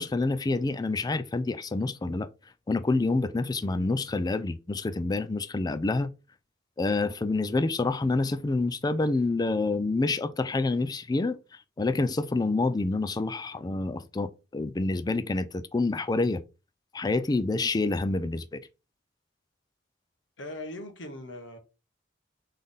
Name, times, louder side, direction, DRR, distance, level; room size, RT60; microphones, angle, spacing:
voice 1, 0.0-2.3 2.7-6.1 6.8-11.4 11.8-16.4 16.9-18.6, left 3 dB, 20° left, 0.4 m, -27 dB
voice 2, 20.4-21.6, left 1 dB, 85° left, 1.2 m, -39 dB
4.0 x 3.4 x 3.7 m
head